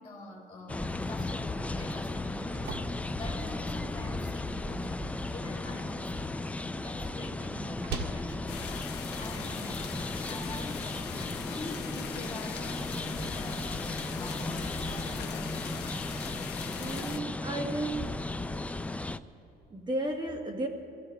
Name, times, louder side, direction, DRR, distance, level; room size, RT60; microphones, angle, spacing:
voice 1, 0.0-8.7 9.2-9.9 10.2-15.9, left 1 dB, 35° left, -1 dB, 4.3 m, -45 dB
sound 1, 0.7-19.2, left 2 dB, 10° left, 0.4 m, -35 dB
sound 2, 2.1-10.1, right 4 dB, 75° right, 1.6 m, -46 dB
sound 3, 8.5-17.2, left 8 dB, 90° left, 1.0 m, -41 dB
voice 2, 16.8-18.2 19.7-20.7, right 2 dB, 25° right, 1 dB, 1.3 m, -33 dB
29.5 x 16.5 x 2.3 m, 3.0 s
cardioid pair, 110°, 17 cm